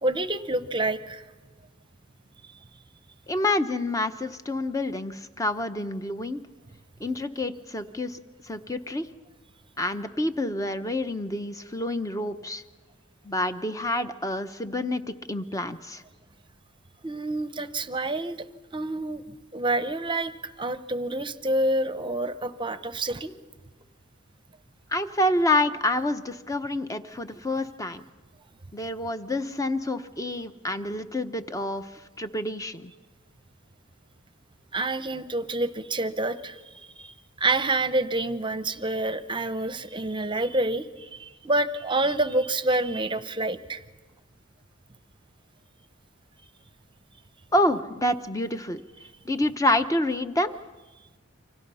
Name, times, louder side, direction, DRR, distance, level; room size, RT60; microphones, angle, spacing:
voice 1, 0.0-1.2 17.0-18.4 18.7-19.2 19.5-23.3 34.7-36.6 37.0-43.8, right 2 dB, 25° right, 12 dB, 0.9 m, -28 dB
voice 2, 3.3-6.4 7.0-8.2 8.5-9.0 9.8-12.6 13.2-16.0 24.9-28.0 28.7-31.9 32.2-32.9 47.5-48.8 49.2-50.5, left 1 dB, 15° left, 9 dB, 0.9 m, -28 dB
29.5 x 25.5 x 5.6 m, 1.2 s
head